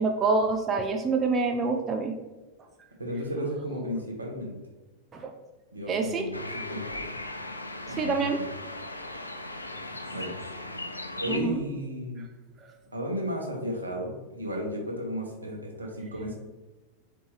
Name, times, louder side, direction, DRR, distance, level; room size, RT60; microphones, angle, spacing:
voice 1, 0.0-2.2 5.1-5.3 5.9-6.3 7.9-8.4 11.3-11.6 12.6-12.7, right 4 dB, 25° right, 4 dB, 0.4 m, -26 dB
voice 2, 3.0-4.6 5.7-7.1 7.9-8.4 9.8-10.3 11.2-12.3 12.9-16.3, equal, 80° right, 0 dB, 0.9 m, -34 dB
sound 1, 6.3-11.4, left 1 dB, 85° left, 0.3 m, -38 dB
4.2 x 3.3 x 3.3 m, 1.2 s
figure-of-eight pair, 90°, 0 cm